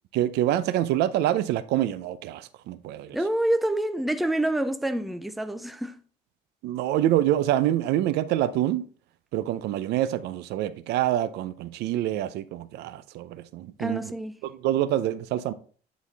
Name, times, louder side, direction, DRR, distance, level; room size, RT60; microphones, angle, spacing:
voice 1, 0.1-3.2 6.6-8.9 9.3-14.1 14.4-15.5, right 12 dB, 85° right, 0.5 m, -26 dB
voice 2, 3.1-6.0 13.8-14.4, right 1 dB, ahead, 0.4 m, -27 dB
9.5 x 4.1 x 3.3 m
cardioid pair, 110°, 17 cm